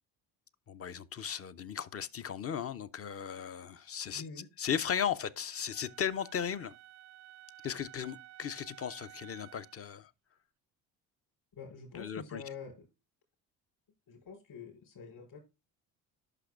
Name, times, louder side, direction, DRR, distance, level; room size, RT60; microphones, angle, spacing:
voice 1, 0.7-4.2 4.6-6.7 7.6-10.1 11.9-12.4, left 8 dB, 30° left, 0.6 m, -36 dB
voice 2, 4.1-4.5 11.5-12.9 14.1-15.4, left 5 dB, 50° left, 4.7 m, -46 dB
Wind instrument woodwind instrument, 5.7-9.8, right 14 dB, 35° right, 0.4 m, -54 dB
11.5 x 5.9 x 2.4 m
hypercardioid pair, 60°, 49 cm